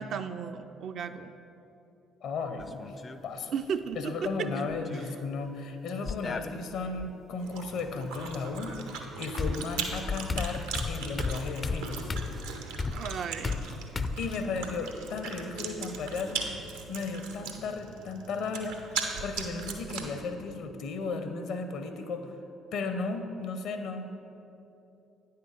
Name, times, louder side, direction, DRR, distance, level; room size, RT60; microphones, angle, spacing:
voice 1, 0.0-1.3 3.5-4.7 9.5-9.7 12.9-13.7, right 7 dB, 55° right, 9 dB, 0.4 m, -35 dB
voice 2, 2.2-2.9 3.2-3.5 4.0-12.1 14.2-16.5 16.9-22.3 22.7-24.3, left 4 dB, 60° left, 8 dB, 0.7 m, -35 dB
sound 1, 2.6-3.2 4.5-5.1 6.1-7.1 8.8-8.9 9.4-14.4, left 4 dB, 35° left, 0.4 m, -34 dB
Chewing mastication, 7.4-20.2, right 4 dB, 80° right, 0.7 m, -39 dB
9.0 x 5.8 x 4.9 m, 3.0 s
hypercardioid pair, 50°, 0 cm